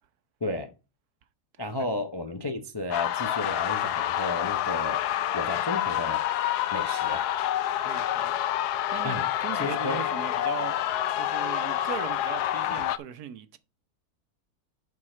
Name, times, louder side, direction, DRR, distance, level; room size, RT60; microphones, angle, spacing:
voice 1, 1.6-5.0 5.3-6.2 6.7-7.2 9.0-9.3 9.5-10.0, left 2 dB, 35° left, 0.4 m, -33 dB
sound 1, 2.9-13.0, left 12 dB, 90° left, 1.2 m, -28 dB
voice 2, 7.8-8.3 8.9-10.7 11.1-13.6, right 10 dB, 75° right, 1.3 m, -38 dB
11.0 x 4.8 x 4.3 m
omnidirectional pair, 1.6 m